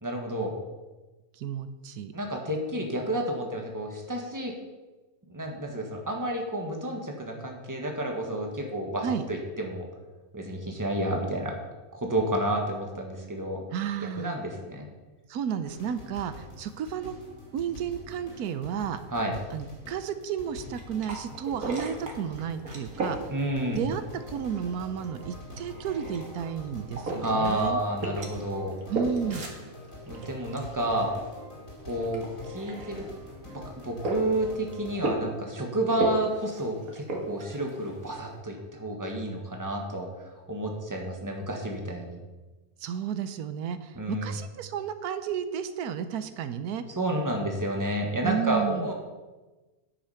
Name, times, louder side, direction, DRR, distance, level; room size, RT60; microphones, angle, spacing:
voice 1, 0.0-0.5 2.1-4.5 5.3-9.8 10.3-11.6 11.9-13.6 14.2-14.9 19.1-19.3 23.3-23.8 27.2-28.7 30.1-31.1 31.9-33.0 33.5-40.1 40.5-42.2 43.9-44.3 47.0-48.9, right 1 dB, 15° right, 1 dB, 1.6 m, -30 dB
voice 2, 1.4-2.1 9.0-9.2 13.7-14.4 15.3-17.1 17.5-19.0 19.5-23.2 23.8-27.8 28.9-29.5 42.8-46.8 48.2-48.9, right 8 dB, 90° right, 10 dB, 1.2 m, -32 dB
sound 1, 15.7-35.0, left 2 dB, 60° left, 3.0 m, -45 dB
sound 2, 20.5-38.4, right 2 dB, 70° right, 2.2 m, -37 dB
9.8 x 8.3 x 5.7 m, 1.2 s
omnidirectional pair, 1.6 m